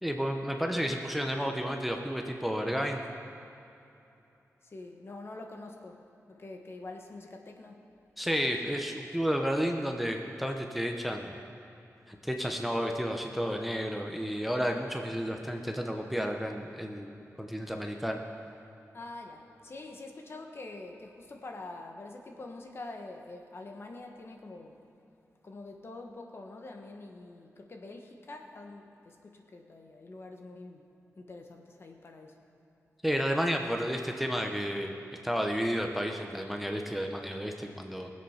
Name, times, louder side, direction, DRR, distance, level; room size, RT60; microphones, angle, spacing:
voice 1, 0.0-3.0 8.2-11.3 12.1-18.2 33.0-34.9 35.2-38.1, equal, ahead, 2 dB, 0.8 m, -31 dB
voice 2, 4.6-7.8 18.9-24.8 25.4-30.9 31.2-32.4, left 2 dB, 45° left, 3 dB, 1.3 m, -45 dB
20.0 x 7.9 x 5.8 m, 2.8 s
wide cardioid pair, 135°, 6 cm